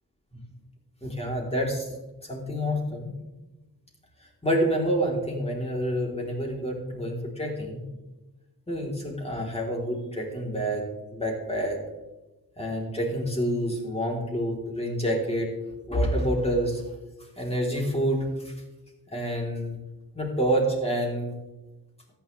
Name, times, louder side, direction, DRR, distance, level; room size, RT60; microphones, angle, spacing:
voice 1, 1.0-1.9 2.2-3.1 4.4-7.8 8.7-10.8 11.1-11.8 12.6-15.5 15.9-16.8 17.4-18.5 19.1-19.8 20.1-21.3, equal, 15° left, -1 dB, 3.9 m, -28 dB
14.0 x 10.0 x 3.5 m, 1.1 s
cardioid pair, 80°, 40 cm